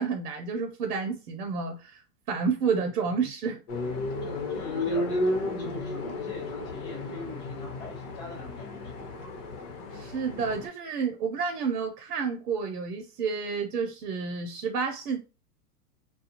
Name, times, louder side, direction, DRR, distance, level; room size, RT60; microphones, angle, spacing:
voice 1, 0.0-2.0 2.3-3.6 9.9-15.2, right 5 dB, 75° right, 0.8 m, -30 dB
voice 2, 2.8-3.2 3.9-9.1, left 3 dB, 10° left, 0.3 m, -43 dB
sound 1, 3.7-10.7, left 1 dB, 45° left, 1.0 m, -33 dB
2.4 x 2.3 x 2.9 m
hypercardioid pair, 130°, 46 cm